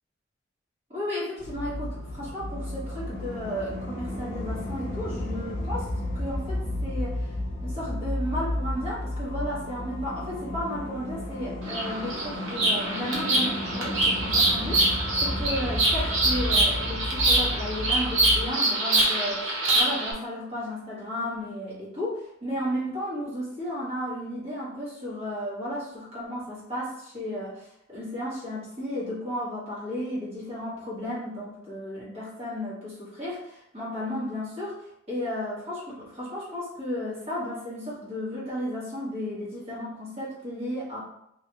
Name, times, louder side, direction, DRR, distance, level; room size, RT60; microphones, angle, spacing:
voice 1, 0.9-7.3 7.6-34.8 35.1-41.0, equal, 35° right, -8 dB, 1.3 m, -34 dB
sound 1, 1.4-18.5, left 1 dB, 60° left, 0.7 m, -33 dB
Bird vocalization bird call bird song, 11.6-20.1, right 2 dB, 75° right, 0.9 m, -25 dB
3.0 x 2.4 x 2.9 m, 0.78 s
head